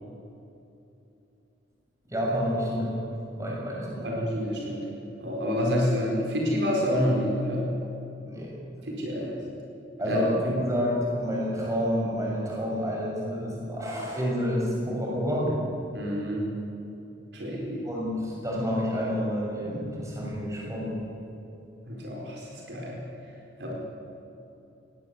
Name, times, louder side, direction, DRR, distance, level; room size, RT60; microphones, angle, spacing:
voice 1, 2.1-3.0 3.3-4.2 8.2-8.5 10.0-15.6 17.8-21.0, equal, 15° right, -4 dB, 6.5 m, -29 dB
voice 2, 4.0-4.9 5.2-7.7 8.8-9.4 10.1-10.2 15.9-16.5 17.3-17.8 21.9-23.1 23.6-23.7, equal, 60° right, -2 dB, 4.6 m, -28 dB
20.5 x 18.0 x 8.2 m, 2.9 s
head